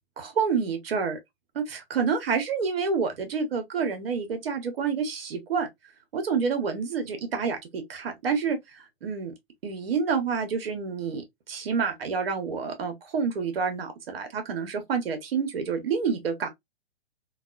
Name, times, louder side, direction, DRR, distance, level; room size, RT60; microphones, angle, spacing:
voice 1, 0.2-1.2 1.5-5.7 6.1-9.3 9.6-16.5, right 5 dB, 65° right, 1.2 m, -28 dB
3.3 x 2.4 x 2.4 m
hypercardioid pair, 130°, 31 cm